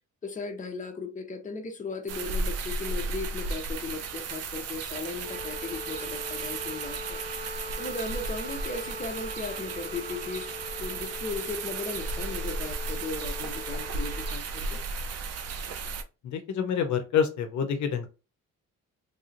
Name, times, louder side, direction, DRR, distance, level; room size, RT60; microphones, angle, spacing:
voice 1, 0.2-7.5 7.8-10.5 10.8-14.8, left 3 dB, 25° left, 0.8 m, -37 dB
sound 1, 2.1-16.0, right 3 dB, 55° right, 0.6 m, -34 dB
Wind instrument woodwind instrument, 5.2-14.4, left 2 dB, 15° right, 1.2 m, -42 dB
voice 2, 16.2-18.1, left 7 dB, 70° left, 0.7 m, -27 dB
3.3 x 2.7 x 2.5 m
cardioid pair, 90°, 30 cm